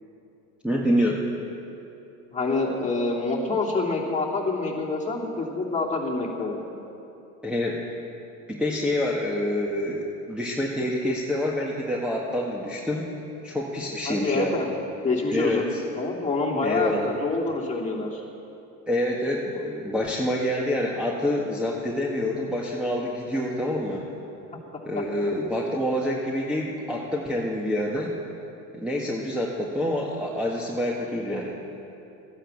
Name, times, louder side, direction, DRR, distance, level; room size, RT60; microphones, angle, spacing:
voice 1, 0.6-1.2 7.4-7.8 8.5-13.1 13.4-14.6 15.3-15.8 16.6-17.1 18.9-24.1 24.8-28.1 28.7-31.6, left 1 dB, ahead, -3 dB, 1.7 m, -27 dB
voice 2, 2.3-6.6 14.1-14.7 15.0-15.6 16.0-16.9 17.2-18.2 24.5-24.6, left 3 dB, 15° left, -3 dB, 2.8 m, -26 dB
13.5 x 10.0 x 7.3 m, 2.8 s
hypercardioid pair, 75°, 44 cm